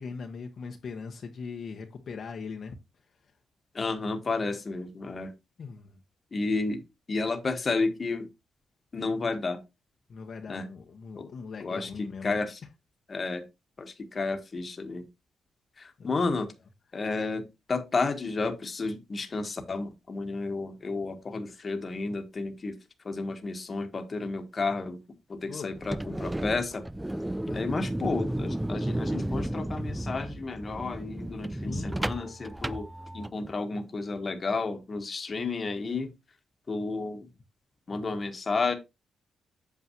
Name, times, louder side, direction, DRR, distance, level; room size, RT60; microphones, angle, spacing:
voice 1, 0.0-2.7 5.6-6.0 10.1-12.4 16.0-16.4 25.5-25.7 27.5-27.9 31.7-31.9, left 5 dB, 50° left, 1.1 m, -40 dB
voice 2, 3.7-5.3 6.3-6.8 7.1-8.3 8.9-9.6 10.5-10.7 11.1-11.3 11.6-12.6 13.1-13.4 13.8-15.0 15.8-16.5 16.9-22.8 23.0-25.0 25.3-26.8 27.5-32.9 33.1-36.1 36.7-37.3 37.9-38.8, left 3 dB, 30° left, 1.5 m, -31 dB
sound 1, 25.7-33.5, right 1 dB, 5° right, 0.3 m, -33 dB
8.3 x 6.8 x 3.0 m
wide cardioid pair, 140°, 0 cm